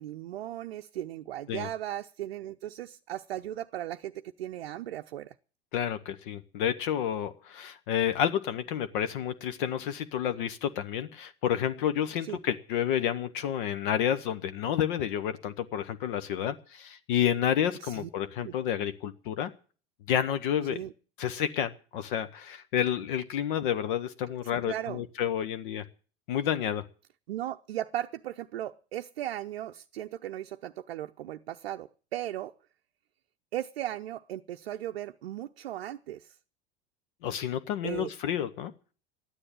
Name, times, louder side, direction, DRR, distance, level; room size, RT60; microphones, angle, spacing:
voice 1, 0.0-5.3 12.2-12.4 17.8-18.1 18.4-18.5 20.7-20.9 24.6-25.0 27.3-32.5 33.5-36.3 37.8-38.1, right 13 dB, 65° right, 0.6 m, -37 dB
voice 2, 5.7-19.5 20.1-20.8 21.2-25.8 26.3-26.9 37.2-38.7, left 9 dB, 55° left, 1.0 m, -30 dB
13.0 x 9.9 x 8.8 m
figure-of-eight pair, 80°, 32 cm